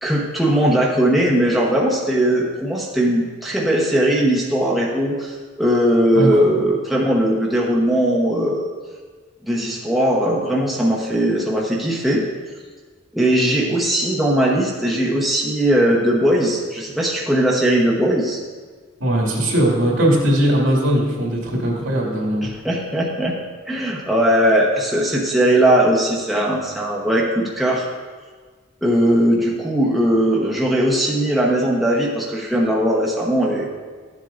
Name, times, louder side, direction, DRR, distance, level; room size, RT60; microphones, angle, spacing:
voice 1, 0.0-8.7 9.4-12.2 13.1-18.4 22.4-23.4 23.7-27.9 28.8-33.7, right 1 dB, ahead, -4 dB, 0.9 m, -19 dB
voice 2, 19.0-22.5, equal, 85° right, -3 dB, 2.2 m, -19 dB
12.5 x 7.4 x 2.5 m, 1.5 s
head